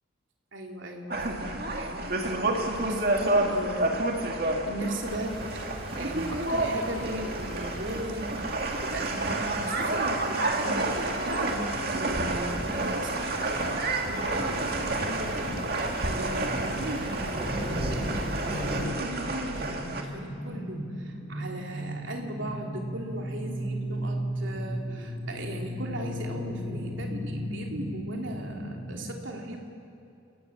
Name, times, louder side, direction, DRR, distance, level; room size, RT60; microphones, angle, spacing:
voice 1, 0.5-8.5 8.8-13.4 14.1-15.6 16.0-18.3 19.0-29.6, right 1 dB, 70° right, 1 dB, 3.1 m, -38 dB
sound 1, 1.1-20.0, right 2 dB, 50° right, 2.2 m, -30 dB
sound 2, 5.0-18.9, right 1 dB, 30° right, 4.7 m, -38 dB
sound 3, 12.6-29.1, equal, 25° left, 3.3 m, -37 dB
29.5 x 18.0 x 7.3 m, 2.7 s
head